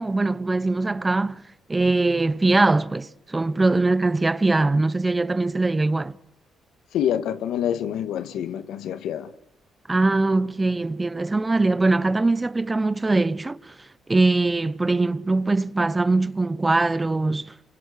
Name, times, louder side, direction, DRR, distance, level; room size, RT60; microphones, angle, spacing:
voice 1, 0.0-1.4 1.7-6.2 9.9-17.5, right 2 dB, 20° right, 0.9 m, -22 dB
voice 2, 6.9-9.3, left 10 dB, 80° left, 1.8 m, -26 dB
28.5 x 26.0 x 6.3 m
cardioid pair, 90°, 0 cm